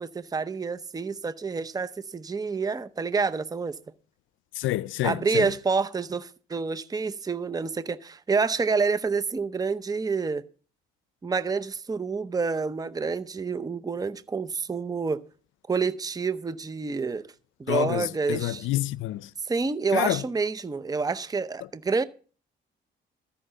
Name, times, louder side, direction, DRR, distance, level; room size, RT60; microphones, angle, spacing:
voice 1, 0.0-3.8 5.0-10.4 11.2-15.2 15.7-17.3 17.6-18.7 19.5-22.0, right 4 dB, 20° right, 0.7 m, -28 dB
voice 2, 4.5-5.5 17.7-19.3 19.9-20.2, left 15 dB, 80° left, 0.5 m, -28 dB
13.5 x 5.8 x 7.7 m
cardioid pair, 90°, 20 cm